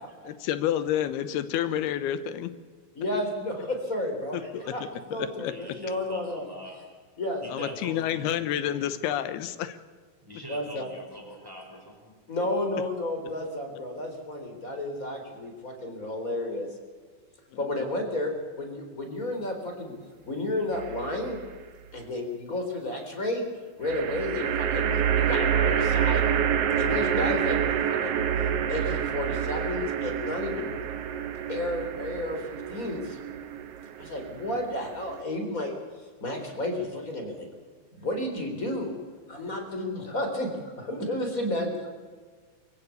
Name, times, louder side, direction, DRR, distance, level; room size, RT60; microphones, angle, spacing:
voice 1, 0.2-2.5 4.3-4.7 5.1-5.5 7.5-9.8, left 11 dB, 90° left, 13 dB, 3.0 m, -29 dB
voice 2, 3.0-6.4 7.2-7.7 10.5-10.9 12.3-16.7 17.6-19.9 20.2-21.4 21.9-23.4 23.8-26.3 26.8-28.2 28.7-30.7 31.5-33.2 34.0-35.8 36.2-37.5 37.9-38.9 39.3-41.9, left 1 dB, 20° left, 4 dB, 4.0 m, -32 dB
voice 3, 5.4-6.8 7.4-8.7 10.2-12.1, equal, 5° right, 1 dB, 4.8 m, -44 dB
sound 1, 20.7-21.4 23.8-35.2, right 8 dB, 70° right, 1.4 m, -28 dB
24.0 x 16.0 x 8.4 m, 1.5 s
omnidirectional pair, 4.5 m